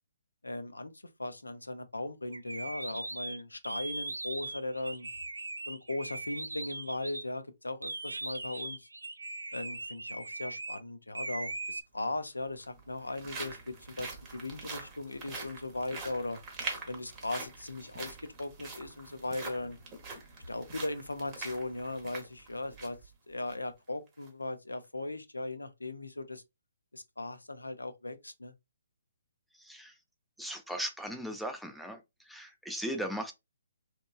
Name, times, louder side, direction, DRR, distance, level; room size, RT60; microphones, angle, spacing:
voice 1, 0.4-0.9 1.2-5.1 5.7-8.9 9.5-16.4 16.9-19.8 20.5-23.0 23.3-26.4 26.9-28.5, left 2 dB, 85° left, 0.4 m, -38 dB
sound 1, 2.3-7.3 7.8-10.8 11.1-11.8, right 2 dB, 85° right, 0.3 m, -40 dB
sound 2, 11.4-11.5 12.5-23.0 23.4-23.5 24.1-24.3, right 3 dB, 25° right, 0.7 m, -44 dB
voice 2, 30.4-32.0 32.3-33.3, equal, ahead, 0.4 m, -37 dB
2.9 x 2.2 x 2.3 m
figure-of-eight pair, 135°, 0 cm